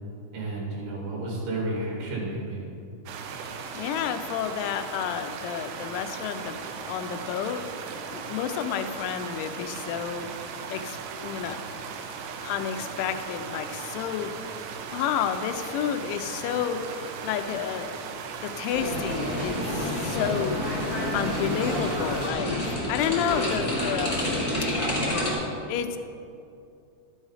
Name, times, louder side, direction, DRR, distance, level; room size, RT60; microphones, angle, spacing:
voice 1, 0.3-2.7, right 2 dB, 60° right, -4 dB, 4.2 m, -31 dB
sound 1, 3.1-22.3, right 6 dB, 80° right, 2.7 m, -38 dB
voice 2, 3.7-7.6 8.1-11.0 11.2-11.6 12.4-14.3 14.9-18.1 18.4-20.6 21.1-24.2 25.7-26.0, left 8 dB, 85° left, 8 dB, 3.0 m, -30 dB
sound 2, 18.7-25.3, left 1 dB, 20° left, 0.9 m, -28 dB
12.0 x 7.6 x 4.9 m, 2.5 s
omnidirectional pair, 5.4 m